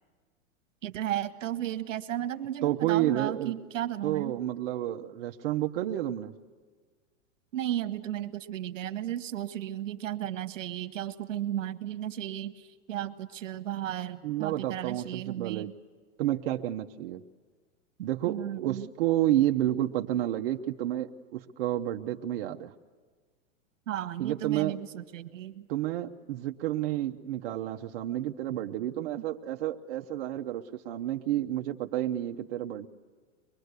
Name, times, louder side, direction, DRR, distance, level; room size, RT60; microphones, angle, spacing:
voice 1, 0.8-4.3 7.5-15.7 18.3-18.8 23.9-25.7, right 12 dB, 80° right, 9 dB, 1.3 m, -34 dB
voice 2, 2.6-3.5 4.0-6.3 14.2-15.7 16.2-17.2 18.0-22.7 24.2-24.8 25.7-32.9, right 13 dB, 50° right, 3 dB, 0.8 m, -30 dB
24.0 x 21.5 x 8.2 m, 1.5 s
supercardioid pair, 150°, 38 cm